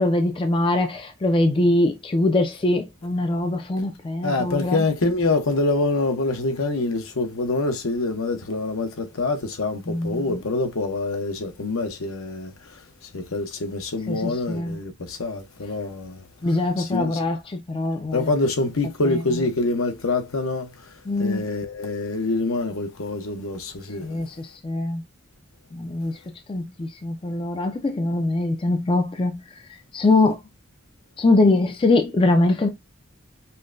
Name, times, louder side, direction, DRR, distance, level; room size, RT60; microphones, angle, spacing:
voice 1, 0.0-4.8 9.9-10.4 14.1-14.8 16.4-18.3 19.0-19.4 21.1-21.4 24.0-25.0 25.7-26.2 26.5-29.4 29.9-30.4 31.2-32.7, left 2 dB, 25° left, 0.4 m, -22 dB
voice 2, 4.2-12.8 13.1-16.2 16.8-17.2 18.1-24.2, left 2 dB, 75° left, 0.8 m, -26 dB
5.5 x 2.2 x 2.5 m
head